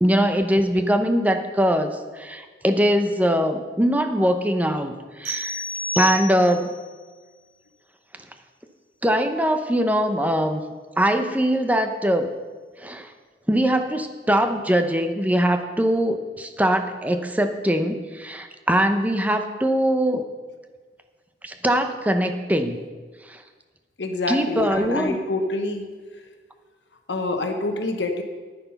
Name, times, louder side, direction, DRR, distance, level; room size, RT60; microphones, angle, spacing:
voice 1, 0.0-5.6 5.9-6.7 9.0-10.6 11.0-12.3 12.8-13.1 13.5-20.3 21.4-22.8 23.3-23.4 24.3-25.2, equal, 10° right, 7 dB, 0.7 m, -22 dB
sound 1, 5.3-6.8, left 1 dB, 35° right, 3.7 m, -29 dB
voice 2, 24.0-25.8 27.1-28.2, left 2 dB, 80° left, 5 dB, 1.1 m, -26 dB
9.8 x 9.2 x 5.8 m, 1.4 s
head